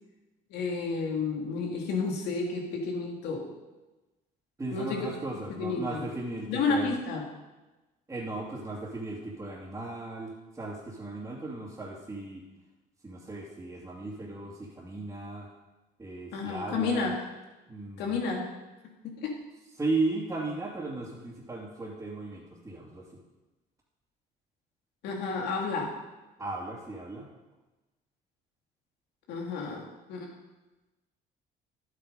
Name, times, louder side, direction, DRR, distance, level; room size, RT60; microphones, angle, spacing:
voice 1, 0.5-3.5 4.7-5.1 5.5-6.1 6.5-7.3 16.3-17.2 18.0-18.5 19.0-19.4 25.0-25.9 29.3-30.3, left 4 dB, 80° left, 0 dB, 2.6 m, -31 dB
voice 2, 4.6-6.9 8.1-10.3 10.6-12.4 13.0-15.5 16.0-17.1 17.7-18.1 19.8-23.1 26.4-27.2, right 2 dB, 15° right, -7 dB, 2.7 m, -36 dB
11.5 x 8.7 x 5.4 m, 1.1 s
cardioid pair, 110°, 17 cm